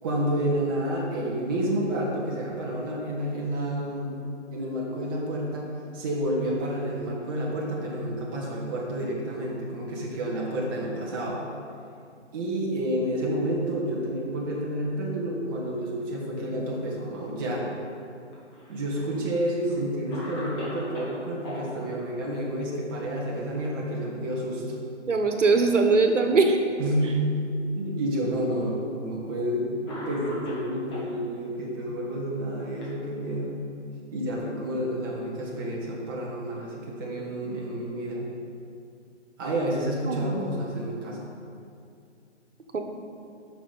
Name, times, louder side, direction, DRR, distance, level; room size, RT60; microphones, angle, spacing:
voice 1, 0.0-4.2 4.5-11.4 12.3-17.7 18.7-24.6 26.8-27.2 27.7-33.6 34.1-38.3 39.4-41.2, right 1 dB, 20° right, -3 dB, 1.2 m, -29 dB
Cough, 18.3-19.2 19.7-19.8 20.1-21.6 23.5-23.9 24.3-24.4 25.2-25.9 26.7-26.8 27.8-27.9 29.0-29.2 29.9-31.1 32.1-33.5, left 1 dB, 25° left, 2.0 m, -40 dB
voice 2, 25.1-26.6 40.0-40.4 42.7-42.8, right 3 dB, 85° right, 5 dB, 1.2 m, -21 dB
8.5 x 5.9 x 5.4 m, 2.4 s
hypercardioid pair, 160°, 36 cm